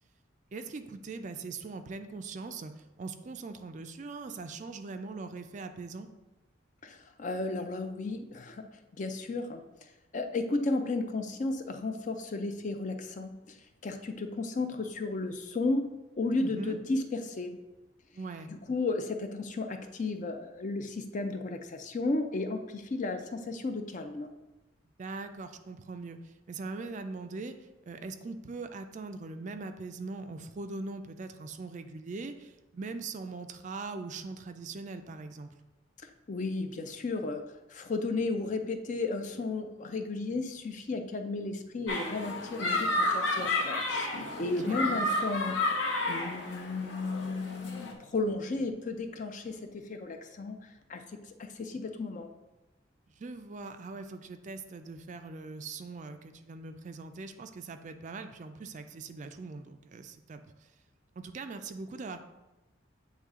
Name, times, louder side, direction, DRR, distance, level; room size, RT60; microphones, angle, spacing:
voice 1, 0.5-6.1 16.4-16.8 18.1-18.5 25.0-27.6 27.9-35.5 42.6-42.8 44.4-44.8 53.2-60.4 61.1-62.2, right 3 dB, 40° right, 8 dB, 0.4 m, -41 dB
voice 2, 6.8-8.7 9.0-9.6 10.1-13.6 13.8-15.8 16.2-17.5 18.5-24.3 36.3-37.4 37.7-45.6 46.1-52.3, left 3 dB, 40° left, 6 dB, 0.5 m, -34 dB
sound 1, 41.9-47.9, left 2 dB, 70° left, 0.9 m, -31 dB
8.3 x 3.1 x 3.6 m, 1.0 s
head